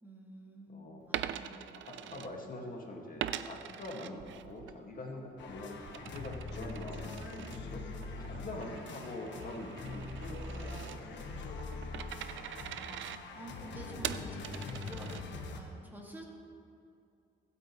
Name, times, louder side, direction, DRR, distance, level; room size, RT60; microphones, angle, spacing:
voice 1, 0.0-0.8 1.1-1.7 2.0-2.4 10.0-10.2 12.6-16.3, right 1 dB, 10° right, -1 dB, 2.0 m, -50 dB
voice 2, 0.7-1.0 1.9-11.2, left 2 dB, 45° left, 0 dB, 2.0 m, -44 dB
Coin (dropping), 1.0-2.7 3.2-4.8 5.2-15.6, right 11 dB, 75° right, 0.6 m, -43 dB
sound 1, 5.4-15.6, left 3 dB, 65° left, 1.4 m, -43 dB
24.5 x 8.4 x 3.2 m, 2.6 s
cardioid pair, 90°, 20 cm